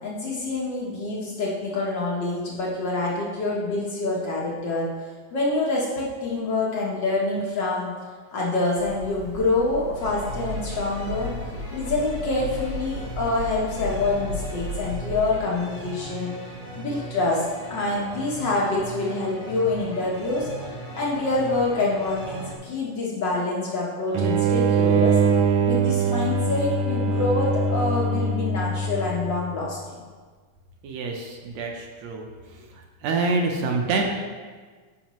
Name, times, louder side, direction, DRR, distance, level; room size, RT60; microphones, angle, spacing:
voice 1, 0.0-7.9 8.3-11.3 11.7-16.3 16.7-20.5 20.9-25.2 25.6-29.8, left 2 dB, 85° left, -4 dB, 0.9 m, -26 dB
sound 1, 8.8-15.3, equal, 55° right, 1.3 m, -35 dB
sound 2, 10.0-22.5, right 2 dB, 35° left, 0.6 m, -39 dB
sound 3, 24.1-29.5, right 4 dB, 85° right, 1.5 m, -22 dB
voice 2, 30.8-32.3 32.7-34.0, right 3 dB, 70° right, 2 dB, 1.7 m, -26 dB
14.5 x 5.6 x 3.1 m, 1.5 s
omnidirectional pair, 3.8 m